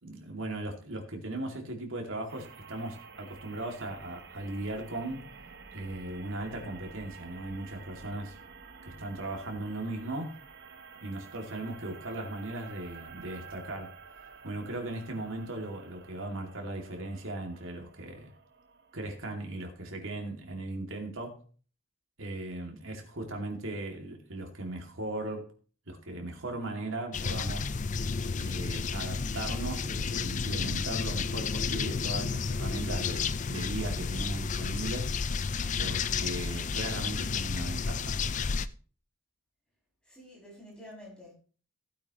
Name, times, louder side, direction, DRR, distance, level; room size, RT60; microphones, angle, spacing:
voice 1, 0.0-5.2 5.7-8.4 8.8-10.4 11.0-14.0 14.4-18.3 18.9-21.4 22.2-25.5 25.9-27.7 28.3-35.1 35.8-38.2, right 2 dB, 75° right, 2.6 m, -38 dB
sound 1, 2.3-19.8, right 5 dB, 55° right, 1.1 m, -51 dB
sound 2, 27.1-38.7, left 5 dB, 35° left, 0.4 m, -31 dB
voice 2, 40.0-41.3, left 1 dB, 5° left, 6.9 m, -49 dB
16.0 x 8.9 x 3.1 m
head